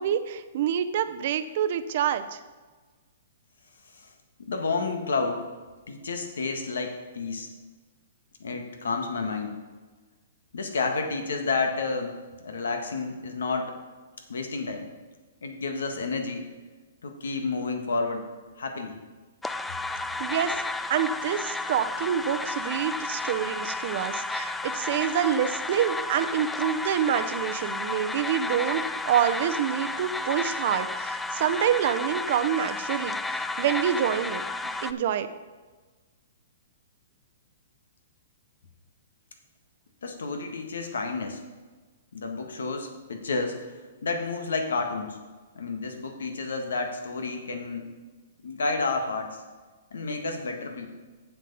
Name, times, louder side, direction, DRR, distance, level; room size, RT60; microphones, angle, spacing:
voice 1, 0.0-2.4 20.2-20.6 20.9-34.4 34.8-35.3, right 9 dB, 55° right, 10 dB, 0.7 m, -27 dB
voice 2, 4.4-5.4 5.9-7.5 8.4-9.6 10.5-13.8 14.3-14.9 15.4-16.5 17.0-18.2 18.6-19.0 40.0-41.4 42.1-45.2 45.5-47.9 48.4-49.4 49.9-50.9, left 4 dB, 85° left, 5 dB, 1.6 m, -30 dB
sound 1, 19.4-34.9, left 3 dB, 5° left, 0.3 m, -32 dB
7.8 x 7.5 x 5.4 m, 1.3 s
hypercardioid pair, 140°, 0 cm